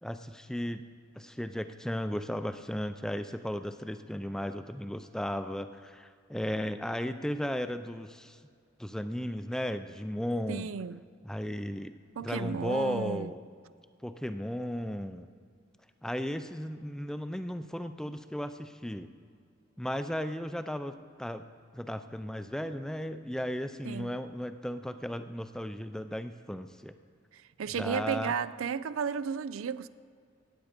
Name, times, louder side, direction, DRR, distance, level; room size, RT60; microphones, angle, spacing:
voice 1, 0.0-0.8 1.1-8.4 8.8-10.7 11.2-11.9 12.2-13.4 14.0-15.3 16.0-19.1 19.8-21.5 21.7-26.9 27.7-28.3, equal, 5° left, 0.4 m, -35 dB
voice 2, 10.5-11.0 12.2-13.3 23.8-24.2 27.3-29.9, right 6 dB, 85° right, 0.4 m, -34 dB
17.0 x 8.2 x 5.1 m
head